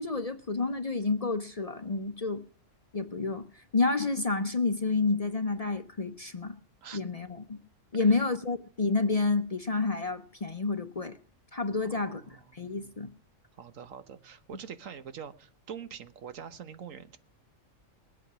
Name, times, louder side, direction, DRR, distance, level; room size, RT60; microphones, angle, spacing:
voice 1, 0.0-2.4 2.9-6.5 6.9-7.6 7.9-11.2 11.5-12.2 12.5-13.1, left 3 dB, 35° left, 0.7 m, -29 dB
voice 2, 11.8-12.6 13.6-17.2, right 7 dB, 80° right, 1.4 m, -44 dB
20.5 x 8.3 x 6.0 m
omnidirectional pair, 1.3 m